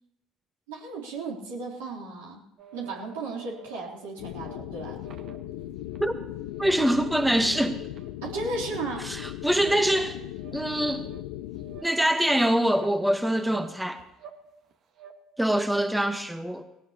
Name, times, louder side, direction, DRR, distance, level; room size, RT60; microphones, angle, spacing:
voice 1, 0.7-2.4 2.7-5.0 8.2-9.1, right 3 dB, 75° right, -4 dB, 3.5 m, -35 dB
sound 1, 2.6-3.8 4.3-4.6 5.0-6.1 6.5-6.8 7.1-7.5 7.9-8.1 8.5-8.8 9.2-9.3 9.7-10.0 10.4-10.5 11.0-11.2 11.5-11.9 12.3-13.0 13.5-13.7 14.0-14.4 14.7-15.1, right 7 dB, 50° right, 1.6 m, -49 dB
sound 2, 4.2-11.8, left 14 dB, 75° left, 0.6 m, -38 dB
voice 2, 6.6-7.8 9.0-10.2 10.5-11.1 11.8-14.0 15.4-16.6, right 1 dB, 5° right, 8 dB, 1.3 m, -24 dB
20.0 x 18.0 x 3.0 m, 0.90 s
hypercardioid pair, 60°, 0 cm